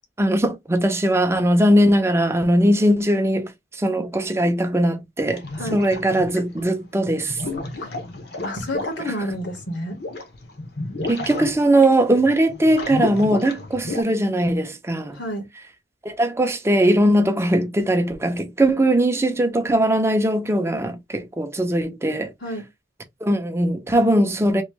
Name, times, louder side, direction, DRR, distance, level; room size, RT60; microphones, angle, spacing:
voice 1, 0.2-3.5 3.8-5.4 5.7-7.4 11.1-15.2 16.0-22.3 23.2-24.6, right 1 dB, 15° right, 0.6 m, -20 dB
sound 1, 5.3-6.6 7.1-14.0, left 2 dB, 60° left, 0.9 m, -32 dB
voice 2, 5.5-5.8 7.8-7.9 8.4-10.0 15.1-15.5 22.4-22.6, equal, 80° left, 1.4 m, -30 dB
3.1 x 2.6 x 3.1 m
head